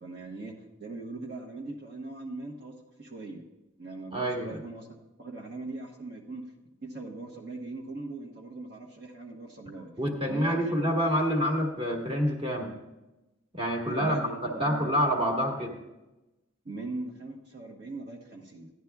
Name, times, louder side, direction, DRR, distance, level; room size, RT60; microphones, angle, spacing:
voice 1, 0.0-3.4 3.8-6.4 6.8-9.9 10.3-10.8 13.9-15.0 16.6-18.7, right 2 dB, 55° right, -2 dB, 1.1 m, -40 dB
voice 2, 4.1-4.6 10.0-12.7 13.5-15.8, equal, 30° right, 1 dB, 1.4 m, -27 dB
15.5 x 11.0 x 2.3 m, 1.0 s
head